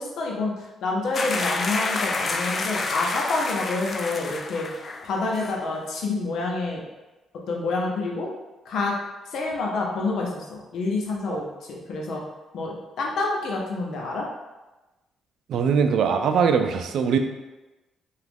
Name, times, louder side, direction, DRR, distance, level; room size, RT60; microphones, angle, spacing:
voice 1, 0.0-4.7 5.0-6.8 7.5-8.3 8.7-8.9 9.3-12.2 12.5-14.3, left 3 dB, 70° left, -1 dB, 0.7 m, -28 dB
sound 1, 1.1-5.1 5.3-5.6, left 3 dB, 40° left, 0.3 m, -29 dB
voice 2, 15.5-17.2, right 6 dB, 75° right, 6 dB, 0.3 m, -22 dB
2.9 x 2.4 x 3.4 m, 1.1 s
cardioid pair, 90°, 0 cm